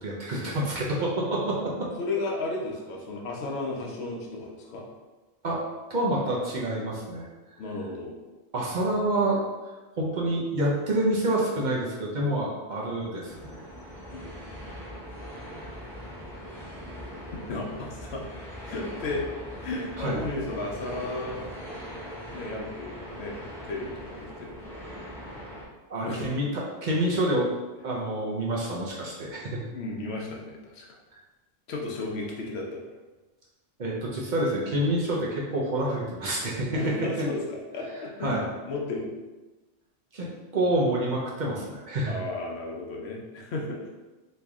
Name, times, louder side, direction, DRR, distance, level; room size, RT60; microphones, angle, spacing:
voice 1, 0.0-1.7 5.4-5.6 5.9-7.6 8.5-9.4 10.0-13.6 20.0-20.2 25.9-27.5 27.8-29.6 31.1-31.2 33.8-36.8 37.2-37.3 38.2-38.4 40.1-40.3 40.5-42.1, right 1 dB, 50° right, -4 dB, 0.7 m, -27 dB
voice 2, 2.0-4.8 7.6-8.1 14.1-14.3 17.3-18.2 18.6-19.2 19.6-21.4 22.3-23.4 23.6-24.8 26.0-26.4 29.7-30.9 31.7-32.8 36.7-38.4 38.7-39.1 42.1-43.9, left 2 dB, 75° left, -1 dB, 0.9 m, -34 dB
sound 1, 13.3-25.6, equal, ahead, 0.8 m, -41 dB
3.1 x 2.7 x 3.5 m, 1.2 s
omnidirectional pair, 1.1 m